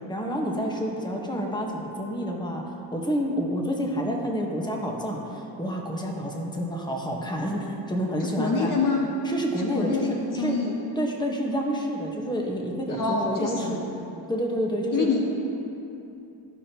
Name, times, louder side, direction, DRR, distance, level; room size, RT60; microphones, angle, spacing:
voice 1, 0.1-2.6 2.9-8.7 9.2-10.1 10.3-10.6 11.0-13.8 14.3-15.1, equal, 10° left, 0 dB, 1.4 m, -29 dB
voice 2, 8.2-9.1 9.6-10.7 12.9-14.0 14.9-15.2, left 4 dB, 50° left, 0 dB, 1.0 m, -26 dB
14.5 x 5.2 x 3.0 m, 2.8 s
cardioid pair, 75°, 43 cm